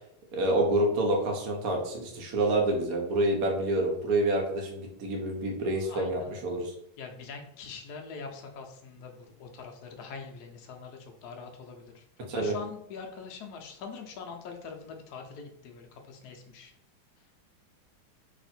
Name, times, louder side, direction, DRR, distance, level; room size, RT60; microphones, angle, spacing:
voice 1, 0.3-6.7 12.2-12.5, right 1 dB, 65° right, 1 dB, 0.9 m, -27 dB
voice 2, 5.9-6.3 7.0-9.1 9.4-12.0 12.3-16.7, left 5 dB, 85° left, 2 dB, 0.8 m, -43 dB
3.5 x 2.4 x 4.1 m, 0.73 s
omnidirectional pair, 2.4 m